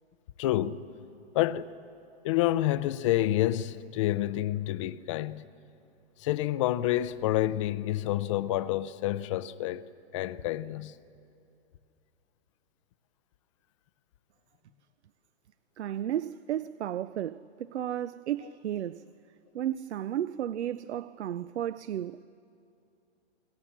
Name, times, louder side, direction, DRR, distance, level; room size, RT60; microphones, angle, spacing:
voice 1, 0.4-0.8 1.3-1.7 2.2-5.4 6.2-9.8 10.1-11.0, left 14 dB, 30° left, 0.5 m, -28 dB
voice 2, 15.8-19.1 19.5-22.2, right 11 dB, 80° right, 0.6 m, -33 dB
29.0 x 20.0 x 7.3 m
hypercardioid pair, 150°, 33 cm